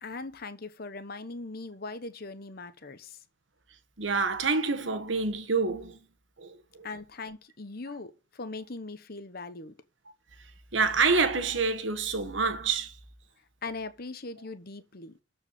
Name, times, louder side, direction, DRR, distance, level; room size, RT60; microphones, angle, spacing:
voice 1, 0.0-3.2 6.8-9.7 13.6-15.1, left 3 dB, 50° left, 1.1 m, -40 dB
voice 2, 4.0-6.0 6.4-6.9 10.7-12.9, right 4 dB, 70° right, 1.4 m, -27 dB
12.5 x 4.9 x 7.5 m
head